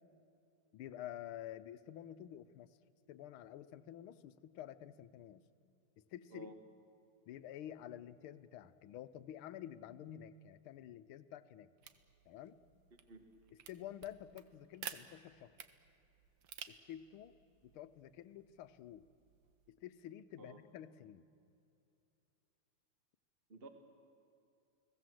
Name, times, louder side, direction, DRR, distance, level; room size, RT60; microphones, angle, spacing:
voice 1, 0.7-2.7 3.1-5.5 6.1-6.5 7.3-11.7 12.3-12.6 13.7-15.5 16.7-17.3 17.6-19.0 19.7-21.3, left 11 dB, 80° left, 13 dB, 1.6 m, -50 dB
voice 2, 6.3-6.6 13.1-13.3 20.4-20.6 23.5-23.7, right 3 dB, 30° right, 5 dB, 1.7 m, -52 dB
sound 1, 11.8-19.7, right 8 dB, 65° right, 1.7 m, -54 dB
30.0 x 19.0 x 7.7 m, 2.7 s
omnidirectional pair, 2.3 m